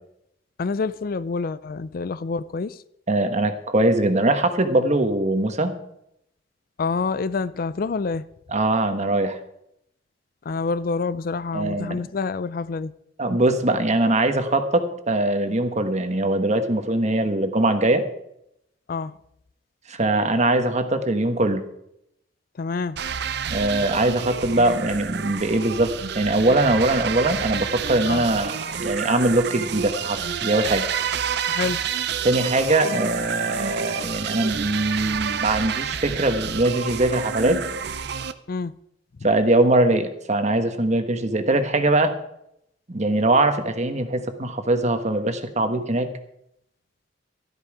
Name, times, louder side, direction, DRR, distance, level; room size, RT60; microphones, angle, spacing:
voice 1, 0.6-2.8 6.8-8.3 10.4-12.9 18.9-19.2 22.6-23.0 28.1-28.3 31.5-31.8 38.5-38.7, left 4 dB, 55° left, 0.4 m, -27 dB
voice 2, 3.1-5.7 8.5-9.4 11.5-12.0 13.2-18.0 19.9-21.6 23.5-30.9 32.2-37.6 39.2-42.1 42.9-46.1, right 2 dB, 40° right, 1.3 m, -22 dB
sound 1, 23.0-38.3, right 7 dB, 65° right, 0.6 m, -29 dB
13.0 x 12.5 x 4.9 m
head